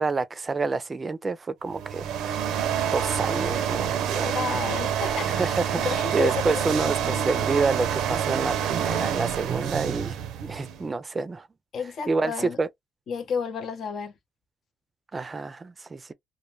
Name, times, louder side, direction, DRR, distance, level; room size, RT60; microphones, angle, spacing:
voice 1, 0.0-2.6 2.9-4.4 5.3-10.2 10.4-11.5 12.1-12.7 15.1-16.1, right 4 dB, 30° right, 0.4 m, -28 dB
sound 1, 1.7-10.9, right 9 dB, 90° right, 0.5 m, -27 dB
voice 2, 4.2-7.3 11.7-12.6 13.1-14.1, left 6 dB, 65° left, 0.7 m, -32 dB
2.2 x 2.1 x 3.1 m
cardioid pair, 90°, 0 cm